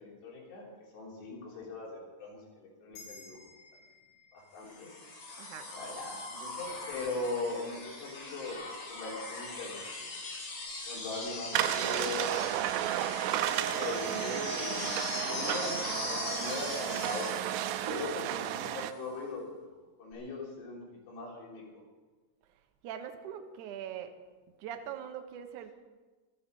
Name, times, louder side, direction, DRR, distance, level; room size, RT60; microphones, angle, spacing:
voice 1, 0.0-3.5 4.3-4.9 5.7-10.1 10.8-12.6 13.4-17.6 17.8-19.7 20.0-21.8, left 2 dB, 80° left, -2 dB, 5.7 m, -40 dB
sound 1, 2.9-7.7, left 3 dB, 65° left, 6.7 m, -57 dB
sound 2, 4.6-18.7 20.1-20.2, left 2 dB, 45° left, 3.6 m, -40 dB
sound 3, 11.5-18.9, right 12 dB, 90° right, 2.8 m, -33 dB
voice 2, 12.8-13.2 22.8-24.1 24.6-25.7, right 9 dB, 75° right, 7 dB, 1.9 m, -42 dB
26.0 x 8.7 x 5.3 m, 1.3 s
omnidirectional pair, 4.9 m